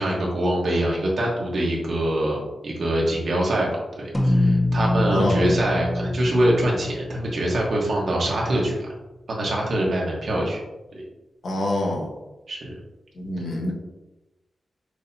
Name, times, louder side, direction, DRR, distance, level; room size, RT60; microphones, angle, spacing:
voice 1, 0.0-2.4 2.6-8.9 9.3-10.6 10.9-11.0 12.5-12.7, right 1 dB, 60° right, -3 dB, 1.3 m, -24 dB
sound 1, 4.1-8.7, left 1 dB, 10° left, 0.6 m, -25 dB
voice 2, 5.1-5.5 11.4-12.1 13.2-13.7, left 1 dB, 65° left, -1 dB, 1.0 m, -25 dB
6.3 x 2.8 x 2.8 m, 1.0 s
wide cardioid pair, 110°, 0 cm